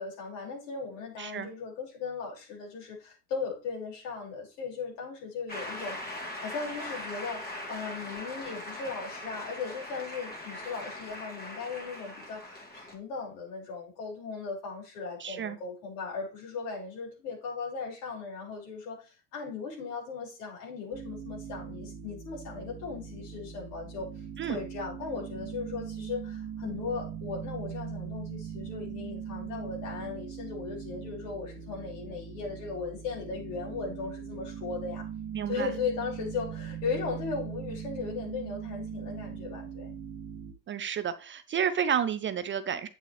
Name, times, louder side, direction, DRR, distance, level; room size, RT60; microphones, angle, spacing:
voice 1, 0.0-6.0 6.4-24.1 24.5-35.1 35.5-40.0, left 5 dB, 70° left, 5.8 m, -37 dB
voice 2, 1.2-1.5 15.2-15.6 24.4-24.6 35.3-35.7 40.7-42.9, right 8 dB, 25° right, 0.6 m, -31 dB
Shout / Cheering / Applause, 5.5-12.9, left 1 dB, 20° left, 2.5 m, -40 dB
sound 1, 20.9-40.5, right 8 dB, 45° right, 2.1 m, -40 dB
8.8 x 8.7 x 3.3 m
hypercardioid pair, 95°, 49 cm